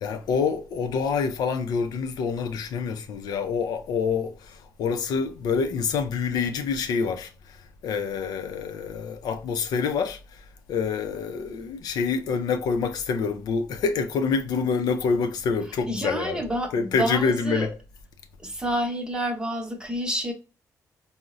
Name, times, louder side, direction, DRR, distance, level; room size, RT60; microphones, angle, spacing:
voice 1, 0.0-7.3 7.8-10.2 10.7-16.4 16.7-17.7, left 5 dB, 85° left, 0.5 m, -26 dB
voice 2, 15.8-17.7 18.4-20.3, right 1 dB, 10° right, 0.8 m, -29 dB
3.8 x 2.1 x 2.4 m
cardioid pair, 110°, 7 cm